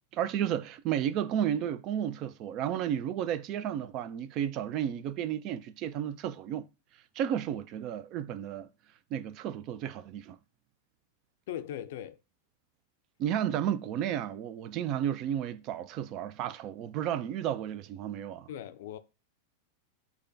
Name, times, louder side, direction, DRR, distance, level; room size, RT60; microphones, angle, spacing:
voice 1, 0.1-6.7 7.2-8.7 9.1-10.4 13.2-18.5, right 10 dB, 45° right, 0.3 m, -32 dB
voice 2, 11.5-12.2 18.5-19.0, left 11 dB, 65° left, 0.4 m, -39 dB
6.5 x 2.2 x 2.6 m
hypercardioid pair, 95°, 0 cm